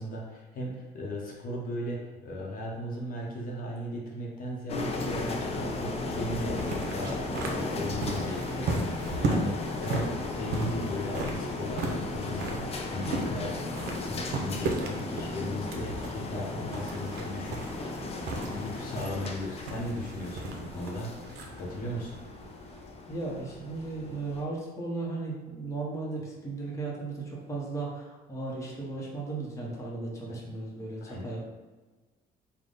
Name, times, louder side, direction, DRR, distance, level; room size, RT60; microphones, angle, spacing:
voice 1, 0.0-13.5 14.0-18.0 18.4-21.1 21.6-22.2 31.0-31.3, left 1 dB, 55° left, -3 dB, 0.8 m, -37 dB
sound 1, 4.7-24.4, left 2 dB, 35° left, 0.5 m, -36 dB
sound 2, 5.4-23.0, right 3 dB, 75° right, 0.6 m, -36 dB
voice 2, 23.1-31.5, right 3 dB, 15° left, -4 dB, 0.8 m, -36 dB
3.5 x 2.2 x 3.8 m, 1.2 s
cardioid pair, 110°, 17 cm